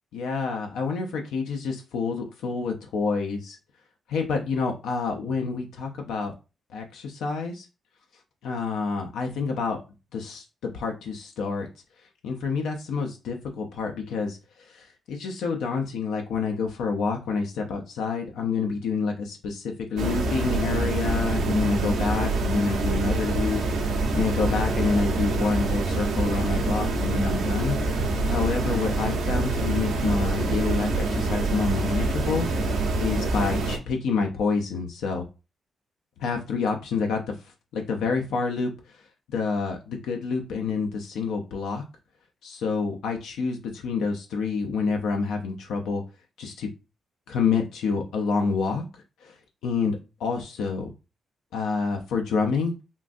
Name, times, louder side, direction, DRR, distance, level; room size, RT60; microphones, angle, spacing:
voice 1, 0.1-3.6 4.1-6.3 6.7-7.7 8.4-9.8 10.1-11.7 12.2-23.6 24.1-27.8 28.3-32.5 33.0-35.2 36.2-41.8 42.4-46.0 46.4-46.7 47.3-48.8 49.2-49.4 49.6-50.9 51.5-52.7, left 4 dB, 85° left, 3 dB, 0.5 m, -28 dB
sound 1, 20.0-33.8, right 2 dB, 80° right, 0.7 m, -26 dB
3.6 x 2.5 x 2.5 m, 0.29 s
supercardioid pair, 55°, 0 cm